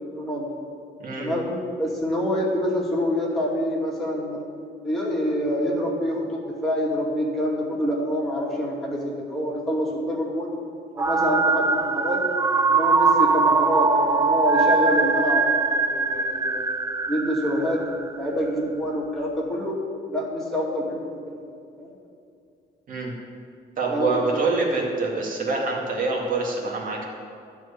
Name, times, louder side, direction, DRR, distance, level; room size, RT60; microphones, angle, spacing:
voice 1, 0.1-0.5 1.2-4.4 4.8-10.5 10.9-12.2 12.7-16.7 17.1-19.8 20.1-21.1 21.8-21.9 23.9-24.2, equal, ahead, -6 dB, 2.4 m, -26 dB
sound 1, 11.0-18.3, right 4 dB, 15° right, 0.3 m, -22 dB
voice 2, 23.8-27.1, right 3 dB, 50° right, -2 dB, 2.2 m, -25 dB
13.5 x 4.6 x 8.5 m, 2.5 s
cardioid pair, 160°, 18 cm